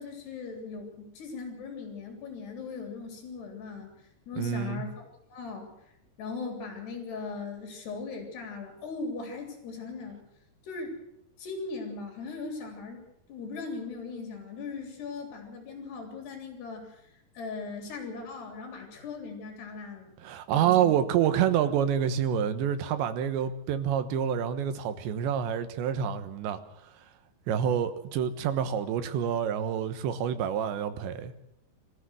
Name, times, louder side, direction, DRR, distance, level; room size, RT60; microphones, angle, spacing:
voice 1, 0.0-3.9 4.3-4.9 5.3-5.7 6.2-10.2 10.6-11.0 11.4-13.0 13.3-17.0 17.4-20.1 20.5-21.0, left 4 dB, 65° left, 3 dB, 5.4 m, -39 dB
voice 2, 4.4-4.8 20.2-26.6 27.5-31.3, right 9 dB, 80° right, 10 dB, 3.5 m, -27 dB
23.0 x 14.5 x 7.8 m, 0.78 s
omnidirectional pair, 5.2 m